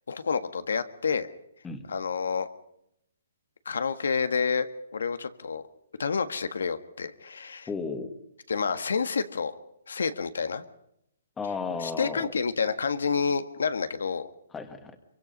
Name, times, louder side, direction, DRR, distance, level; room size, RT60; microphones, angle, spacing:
voice 1, 0.1-1.3 1.9-2.5 3.7-4.7 4.9-5.6 6.0-7.7 8.5-9.5 9.9-10.6 11.8-14.3, left 5 dB, 90° left, 10 dB, 1.7 m, -29 dB
voice 2, 7.7-8.1 11.4-12.3 14.5-15.0, left 4 dB, 10° left, 8 dB, 1.7 m, -34 dB
24.5 x 24.0 x 5.4 m, 0.79 s
hypercardioid pair, 165°, 0 cm